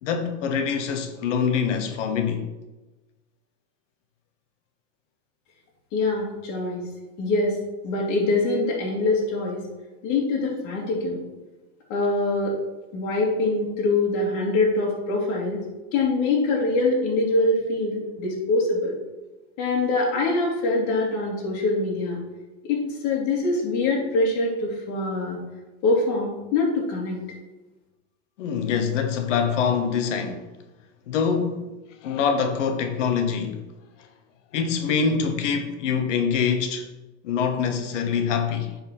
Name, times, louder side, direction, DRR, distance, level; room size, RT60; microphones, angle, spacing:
voice 1, 0.0-2.5 28.4-30.4 31.1-31.7 32.0-33.6 34.5-36.9 37.2-38.7, left 6 dB, 90° left, 1.1 m, -24 dB
voice 2, 5.9-6.8 7.2-7.6 7.8-9.6 10.0-11.2 11.9-12.6 12.9-15.6 15.9-18.9 19.6-22.2 22.6-25.4 25.8-27.2, left 2 dB, 50° left, 2.4 m, -24 dB
9.6 x 4.3 x 4.3 m
supercardioid pair, 125°, 36 cm